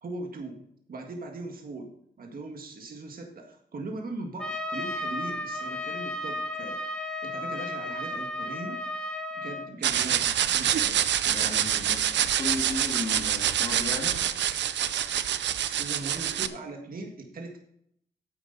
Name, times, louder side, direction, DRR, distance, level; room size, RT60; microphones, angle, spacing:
voice 1, 0.0-0.6 0.9-1.9 2.2-8.8 9.3-11.6 15.6-17.6, right 2 dB, 55° right, 3 dB, 1.8 m, -40 dB
Trumpet, 4.4-9.7, left 1 dB, 5° left, 1.5 m, -34 dB
sound 1, 9.8-16.5, right 10 dB, 80° right, 0.6 m, -26 dB
voice 2, 11.3-14.2, left 2 dB, 30° left, 2 dB, 1.9 m, -35 dB
9.5 x 8.3 x 4.0 m, 0.70 s
cardioid pair, 100°, 18 cm